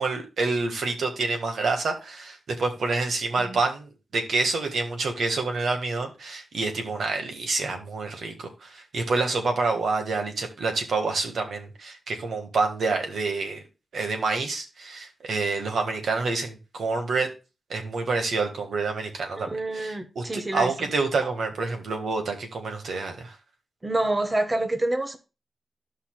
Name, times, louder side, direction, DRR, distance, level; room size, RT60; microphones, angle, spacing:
voice 1, 0.0-13.6 13.9-17.3 17.7-23.4, right 3 dB, 75° right, 1.6 m, -28 dB
voice 2, 19.4-20.7 21.2-21.3 23.8-25.2, right 2 dB, 20° right, 0.8 m, -27 dB
14.0 x 5.6 x 2.3 m
wide cardioid pair, 175°, 0 cm